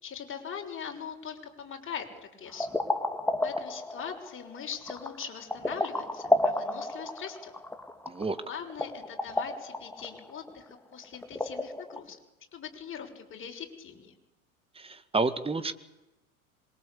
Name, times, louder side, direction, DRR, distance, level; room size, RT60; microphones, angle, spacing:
voice 1, 0.0-2.7 3.4-7.5 8.4-12.2 12.5-14.2, left 7 dB, 30° left, 3 dB, 6.2 m, -41 dB
sound 1, 2.5-12.0, left 1 dB, 5° left, 2.9 m, -32 dB
voice 2, 8.1-8.4 14.8-15.7, right 3 dB, 15° right, 12 dB, 1.9 m, -29 dB
26.5 x 23.5 x 8.6 m, 0.96 s
figure-of-eight pair, 85°, 43 cm